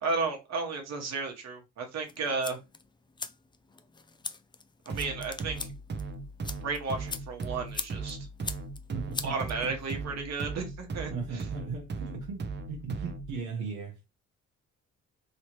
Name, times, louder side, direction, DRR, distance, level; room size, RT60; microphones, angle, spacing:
voice 1, 0.0-2.6 4.9-5.7 6.5-8.2 9.2-11.5, right 4 dB, 60° right, 1.2 m, -33 dB
sound 1, 2.1-10.0, left 4 dB, 15° left, 0.3 m, -42 dB
sound 2, 4.9-13.4, right 3 dB, 35° right, 0.6 m, -38 dB
voice 2, 8.9-9.5 11.1-14.0, right 5 dB, 80° right, 1.0 m, -37 dB
3.1 x 2.8 x 3.0 m
cardioid pair, 90°, 30 cm